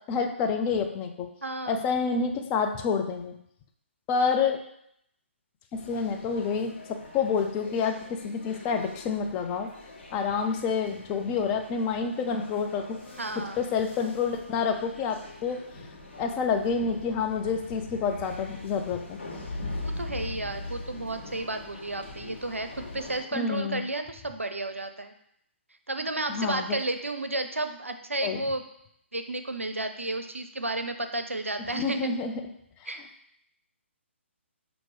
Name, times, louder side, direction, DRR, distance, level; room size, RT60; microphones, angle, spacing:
voice 1, 0.1-1.3 1.7-3.3 4.1-4.6 5.7-9.7 10.1-13.0 13.6-15.6 16.2-19.2 23.3-23.8 26.3-26.8 28.2-28.4 31.7-32.3 32.8-32.9, left 5 dB, 20° left, 4 dB, 0.3 m, -28 dB
voice 2, 1.4-1.8 13.2-13.6 19.8-25.1 25.9-28.6 29.1-32.0 32.9-33.0, right 2 dB, 90° right, 7 dB, 0.5 m, -32 dB
sound 1, 5.7-23.2, left 2 dB, 55° left, 1.3 m, -42 dB
5.8 x 2.6 x 3.2 m, 0.73 s
figure-of-eight pair, 135°, 7 cm